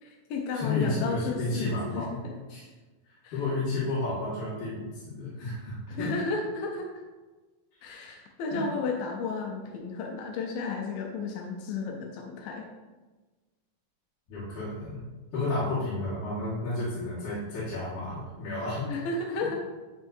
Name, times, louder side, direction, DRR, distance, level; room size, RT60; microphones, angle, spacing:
voice 1, 0.0-2.3 3.2-3.4 5.9-6.9 7.8-12.7 18.9-19.6, left 4 dB, 85° left, 1 dB, 2.4 m, -33 dB
voice 2, 0.5-2.2 2.5-2.7 3.1-6.1 8.5-8.6 14.3-15.0 15.3-18.9, left 2 dB, 70° left, -11 dB, 3.2 m, -32 dB
9.7 x 4.6 x 2.6 m, 1.3 s
omnidirectional pair, 3.9 m